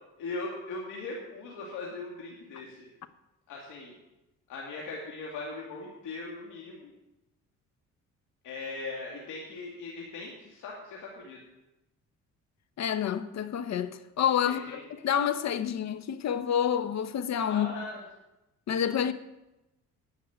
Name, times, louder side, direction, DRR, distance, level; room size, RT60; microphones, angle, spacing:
voice 1, 0.2-2.9 3.5-3.9 4.5-6.9 8.4-11.4 14.4-14.8 17.5-18.0, left 3 dB, 85° left, 2.3 m, -39 dB
voice 2, 12.8-17.7 18.7-19.1, left 9 dB, 60° left, 1.0 m, -28 dB
11.0 x 7.5 x 9.2 m
cardioid pair, 90°, 30 cm